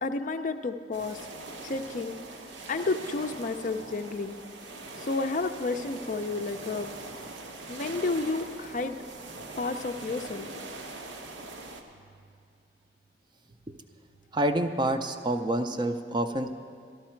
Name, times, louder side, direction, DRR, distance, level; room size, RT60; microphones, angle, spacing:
voice 1, 0.0-1.2 1.6-2.2 2.7-4.4 4.9-6.9 7.7-9.0 9.6-10.5, left 3 dB, 45° left, 8 dB, 0.4 m, -31 dB
sound 1, 0.9-11.8, right 2 dB, 85° right, 1.0 m, -42 dB
voice 2, 14.3-16.5, right 1 dB, 25° right, 7 dB, 0.5 m, -27 dB
13.0 x 12.0 x 4.4 m, 2.2 s
head